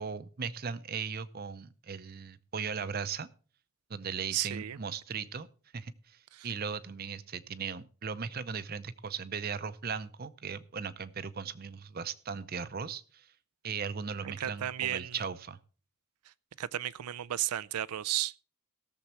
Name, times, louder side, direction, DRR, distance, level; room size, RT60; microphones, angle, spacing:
voice 1, 0.0-3.3 3.9-5.5 5.7-13.3 13.6-15.6, right 6 dB, 40° right, 0.6 m, -38 dB
voice 2, 4.3-4.8 6.3-6.5 14.2-15.1 16.6-18.4, right 12 dB, 90° right, 0.4 m, -34 dB
17.0 x 7.2 x 4.3 m
head